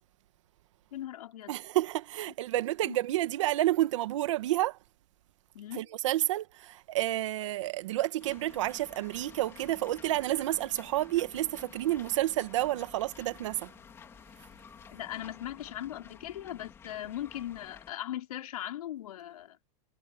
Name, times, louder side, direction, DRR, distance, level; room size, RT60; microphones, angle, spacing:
voice 1, 0.9-1.5 2.8-3.0 5.5-5.9 14.9-19.6, left 12 dB, 85° left, 4.8 m, -39 dB
voice 2, 1.5-4.8 5.8-13.7, right 15 dB, 55° right, 1.7 m, -30 dB
sound 1, 8.2-17.9, left 7 dB, 15° left, 3.7 m, -52 dB
supercardioid pair, 175°, 18 cm